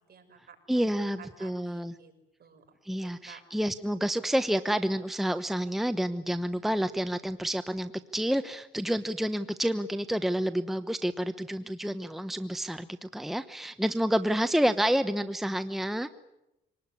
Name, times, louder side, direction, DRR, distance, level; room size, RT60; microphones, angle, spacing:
voice 1, 0.1-0.8 1.2-2.1 2.4-3.4, right 7 dB, 50° right, 3 dB, 6.2 m, -53 dB
voice 2, 0.7-1.9 2.8-16.1, equal, ahead, 10 dB, 1.0 m, -29 dB
25.5 x 19.5 x 9.8 m, 0.90 s
cardioid pair, 90°, 20 cm